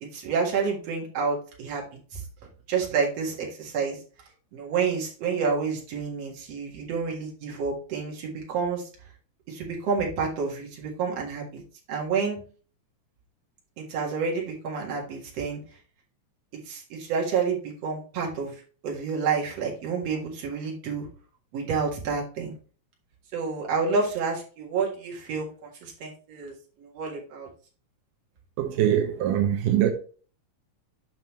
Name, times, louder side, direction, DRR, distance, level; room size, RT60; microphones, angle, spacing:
voice 1, 0.0-1.8 2.1-2.2 2.7-4.0 4.5-8.8 9.5-11.6 11.9-12.4 13.8-15.6 16.7-18.5 18.8-21.1 21.5-22.5 23.3-25.5 25.8-27.5, right 5 dB, 55° right, 2.7 m, -29 dB
voice 2, 28.6-29.9, right 11 dB, 85° right, 2.3 m, -23 dB
7.5 x 5.4 x 3.1 m
omnidirectional pair, 3.7 m